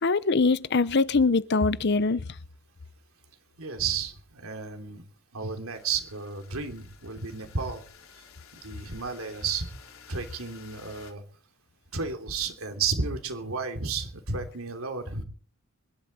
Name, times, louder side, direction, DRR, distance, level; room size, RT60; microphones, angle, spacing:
voice 1, 0.0-2.2, left 3 dB, 55° left, 0.7 m, -23 dB
voice 2, 3.6-5.0 5.3-7.8 8.6-9.7 10.1-11.2 11.9-15.2, right 5 dB, 85° right, 3.0 m, -32 dB
sound 1, 5.7-11.1, left 6 dB, 80° left, 3.4 m, -53 dB
25.5 x 11.5 x 4.2 m
head